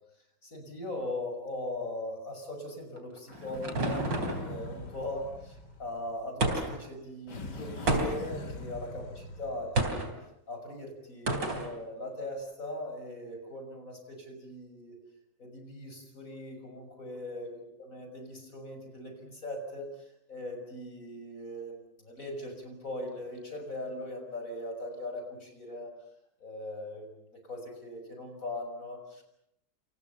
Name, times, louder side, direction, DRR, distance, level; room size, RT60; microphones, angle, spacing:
voice 1, 0.4-4.1 4.4-10.0 10.5-15.0 15.4-19.9 20.3-26.0 26.4-27.1 27.5-29.2, left 1 dB, 45° left, 4 dB, 6.9 m, -40 dB
sound 1, 3.0-4.5 6.4-6.9 7.9-8.4 9.8-10.1 11.3-11.7, right 2 dB, 80° right, 4.4 m, -30 dB
sound 2, 3.3-6.4 7.3-10.0, left 1 dB, 65° left, 3.6 m, -42 dB
29.0 x 27.5 x 7.0 m, 0.78 s
omnidirectional pair, 2.0 m